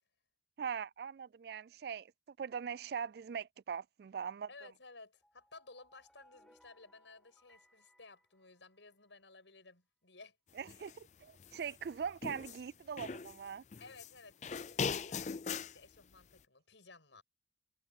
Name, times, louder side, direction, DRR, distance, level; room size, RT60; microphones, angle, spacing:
voice 1, 0.6-2.1 2.4-4.5 10.6-13.6, right 7 dB, 60° right, 0.3 m, -41 dB
voice 2, 4.5-10.4 13.8-17.2, left 3 dB, 85° left, 7.8 m, -57 dB
sound 1, 5.2-9.1, equal, 5° left, 6.6 m, -68 dB
sound 2, 10.7-10.9 11.4-12.6 13.0-14.1 14.4-15.8, left 5 dB, 40° left, 0.4 m, -40 dB
head